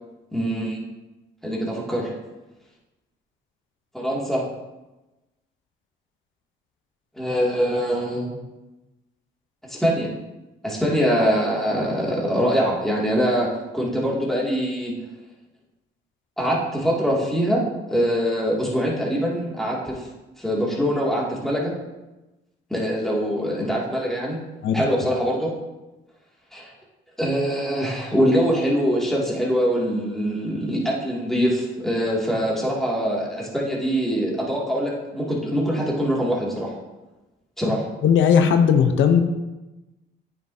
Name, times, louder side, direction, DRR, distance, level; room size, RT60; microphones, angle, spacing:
voice 1, 0.3-0.8 1.4-2.1 3.9-4.4 7.2-8.3 9.6-10.1 10.6-13.5 13.7-14.9 16.4-20.1 20.4-21.7 22.7-24.4 24.7-25.5 26.5-26.7 27.2-36.7 37.6-37.8, equal, ahead, -4 dB, 2.3 m, -23 dB
voice 2, 38.0-39.2, left 7 dB, 75° left, 7 dB, 0.7 m, -17 dB
9.0 x 6.0 x 2.7 m, 1.1 s
cardioid pair, 90°, 20 cm